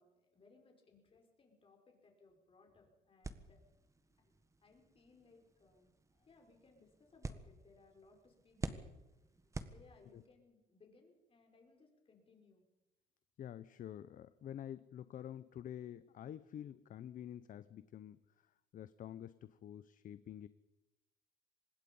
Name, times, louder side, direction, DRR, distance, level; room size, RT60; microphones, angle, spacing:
voice 1, 0.0-3.6 4.2-4.3 4.6-8.9 9.6-12.6, left 3 dB, 35° left, 2 dB, 5.3 m, -66 dB
sound 1, 3.2-10.4, right 3 dB, 20° right, 1.5 m, -49 dB
voice 2, 13.4-18.2 18.7-20.5, left 10 dB, 50° left, 14 dB, 0.8 m, -48 dB
25.0 x 20.0 x 5.5 m, 0.97 s
cardioid pair, 110°, 17 cm